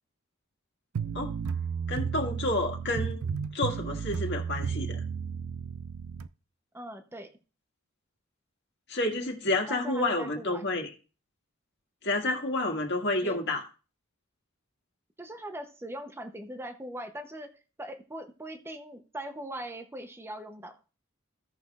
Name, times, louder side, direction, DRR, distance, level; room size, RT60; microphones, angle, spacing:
sound 1, 0.9-6.3, right 6 dB, 80° right, 0.4 m, -33 dB
voice 1, 1.9-3.2 3.5-5.0 8.9-10.9 12.0-13.6, left 2 dB, 55° left, 2 dB, 1.8 m, -29 dB
voice 2, 6.7-7.3 9.7-10.6 13.2-13.4 15.2-17.5 17.8-20.8, right 1 dB, 10° right, 6 dB, 0.7 m, -40 dB
16.0 x 5.7 x 2.4 m, 0.34 s
head